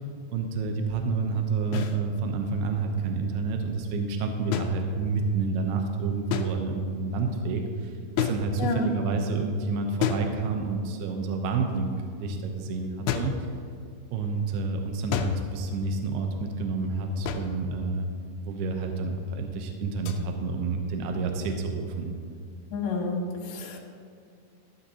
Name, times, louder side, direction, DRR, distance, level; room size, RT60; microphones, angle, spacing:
voice 1, 0.3-11.9 12.2-13.3 14.1-18.1 18.4-22.1, right 4 dB, 75° right, 4 dB, 2.5 m, -29 dB
sound 1, 1.7-2.0 4.5-5.3 6.3-6.9 8.2-8.9 10.0-10.9 13.1-13.5 15.1-15.6 17.3-17.7 20.1-20.2, left 7 dB, 85° left, 2.2 m, -31 dB
voice 2, 22.7-23.8, left 3 dB, 65° left, -1 dB, 3.0 m, -29 dB
13.5 x 11.5 x 2.8 m, 2.3 s
omnidirectional pair, 5.2 m